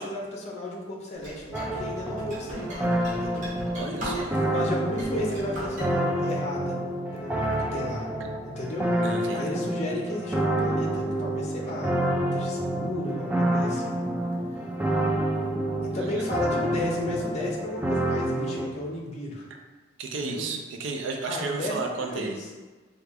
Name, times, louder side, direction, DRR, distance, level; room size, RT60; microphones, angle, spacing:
voice 1, 0.0-3.5 4.5-6.9 7.1-8.1 8.4-8.9 9.3-12.0 12.3-13.9 15.9-19.5 20.1-20.4 21.3-22.5, left 1 dB, 35° left, -2 dB, 0.6 m, -34 dB
sound 1, 1.2-4.5 4.9-5.9, right 1 dB, 40° right, 1.1 m, -38 dB
sound 2, 1.5-18.7, right 1 dB, 10° right, 0.3 m, -28 dB
voice 2, 3.7-4.5 9.0-9.6 16.0-16.2 20.0-22.4, right 3 dB, 70° right, 3 dB, 0.4 m, -33 dB
3.3 x 2.3 x 3.4 m, 1.3 s
head